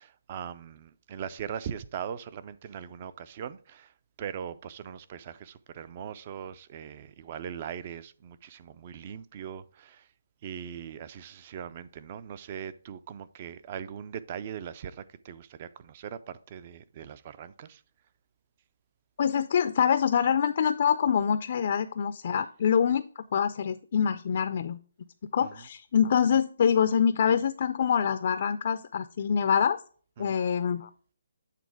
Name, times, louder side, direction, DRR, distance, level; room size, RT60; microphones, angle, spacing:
voice 1, 0.0-3.9 4.2-10.1 10.4-17.8 25.4-25.7 30.2-30.4, right 8 dB, 30° right, 0.4 m, -40 dB
voice 2, 19.2-24.8 25.3-29.8 30.2-30.9, left 7 dB, 45° left, 0.4 m, -25 dB
8.4 x 3.7 x 4.8 m
hypercardioid pair, 165°, 0 cm